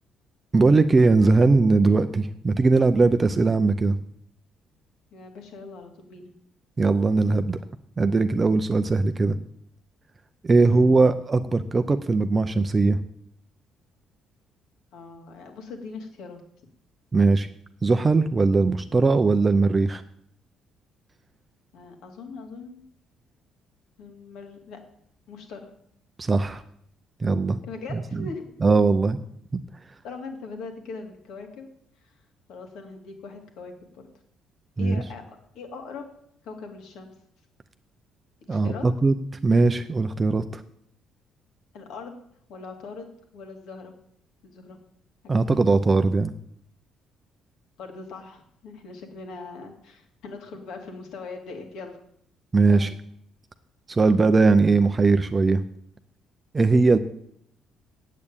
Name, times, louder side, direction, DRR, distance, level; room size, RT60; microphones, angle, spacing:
voice 1, 0.5-4.0 6.8-7.6 8.0-9.4 10.4-13.0 17.1-17.5 17.8-20.0 26.2-26.6 27.2-27.6 28.6-29.2 34.8-35.0 38.5-39.2 39.4-40.6 45.3-46.3 52.5-52.9 53.9-55.6 56.5-57.0, right 3 dB, 15° right, 10 dB, 0.5 m, -20 dB
voice 2, 5.1-6.3 10.7-11.0 14.9-16.4 21.7-22.8 24.0-24.8 25.3-25.7 27.6-28.5 30.0-31.7 32.0-32.1 32.5-34.0 34.8-36.1 36.4-37.1 38.5-38.9 41.7-42.2 42.5-43.1 43.3-43.9 44.4-44.8 45.2-45.6 47.8-52.0 52.7-52.9, left 4 dB, 65° left, 4 dB, 2.4 m, -40 dB
8.7 x 8.3 x 8.8 m, 0.69 s
cardioid pair, 180°, 0 cm